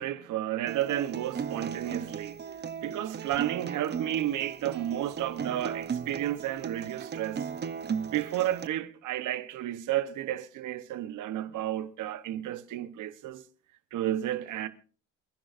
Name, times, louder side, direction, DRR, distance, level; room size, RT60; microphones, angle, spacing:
voice 1, 0.0-2.4 2.8-7.5 8.1-13.4 13.9-14.7, right 12 dB, 80° right, 1.0 m, -32 dB
Acoustic guitar, 0.7-8.7, right 7 dB, 35° right, 0.7 m, -37 dB
28.0 x 10.0 x 2.6 m
cardioid pair, 90°, 30 cm